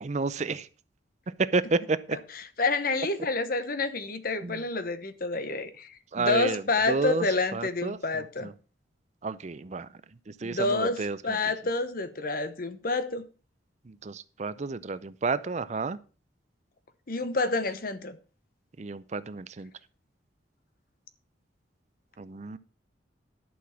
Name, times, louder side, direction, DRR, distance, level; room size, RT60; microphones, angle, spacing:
voice 1, 0.0-0.7 1.4-2.0 4.4-4.6 6.1-6.6 6.9-7.2 7.5-8.0 8.4-8.5 9.2-9.9 10.4-11.4 14.0-16.0 18.8-19.7 22.2-22.6, right 3 dB, 35° right, 0.5 m, -30 dB
voice 2, 2.1-8.5 10.4-13.2 17.1-18.2, left 3 dB, 50° left, 1.0 m, -29 dB
11.0 x 6.1 x 5.7 m
head